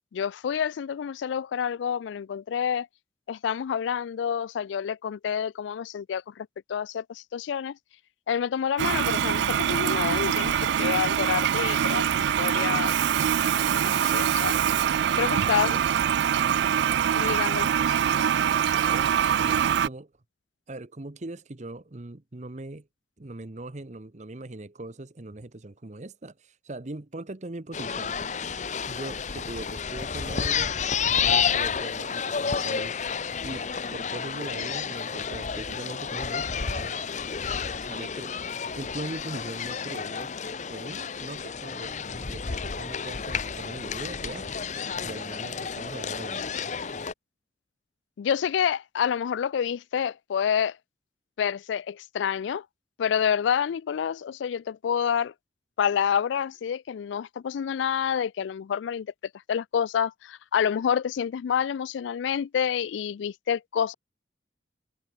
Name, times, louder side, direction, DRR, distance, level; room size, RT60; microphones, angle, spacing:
voice 1, 0.1-2.9 3.3-7.8 8.3-12.9 13.4-13.5 13.8-14.5 15.2-15.7 17.1-18.0 48.2-50.8 51.4-52.6 53.0-55.3 55.8-59.1 59.5-63.9, left 8 dB, 85° left, 0.3 m, -28 dB
Toilet flush, 8.8-19.9, right 9 dB, 70° right, 0.3 m, -24 dB
voice 2, 19.3-20.1 20.7-22.9 23.2-28.1 28.9-30.7 31.1-33.1 33.4-37.1 37.8-38.4 38.7-40.3 40.7-44.5 45.0-46.5, right 2 dB, 40° right, 0.9 m, -40 dB
sound 1, 27.7-47.1, left 6 dB, 40° left, 0.8 m, -31 dB
head